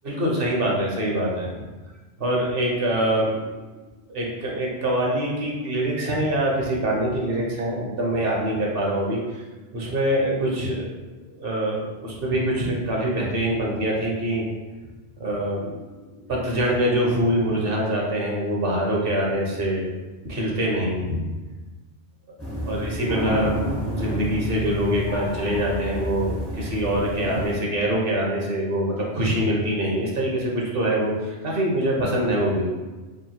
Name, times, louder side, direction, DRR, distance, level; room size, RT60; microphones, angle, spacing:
voice 1, 0.0-1.5 2.2-3.7 4.1-9.4 9.7-10.9 11.3-14.4 15.2-15.8 16.3-19.8 20.2-21.2 22.3-22.4 22.7-23.6 23.8-32.7, right 1 dB, 55° right, -2 dB, 1.0 m, -24 dB
sound 1, 22.4-27.6, equal, 15° right, 0.5 m, -29 dB
3.7 x 2.3 x 4.2 m, 1.2 s
omnidirectional pair, 1.2 m